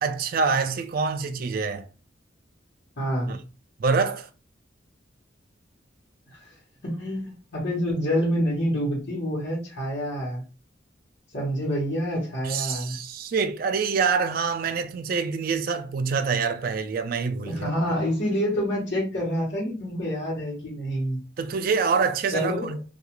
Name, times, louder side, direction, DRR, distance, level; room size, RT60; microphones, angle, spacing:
voice 1, 0.0-1.9 3.3-3.4 3.8-4.3 12.4-17.7 21.4-22.8, right 5 dB, 50° right, 0.3 m, -26 dB
voice 2, 3.0-3.4 6.3-6.5 6.8-10.4 11.3-13.0 17.4-21.2 22.3-22.8, equal, 70° left, 1.1 m, -27 dB
2.3 x 2.3 x 2.9 m
head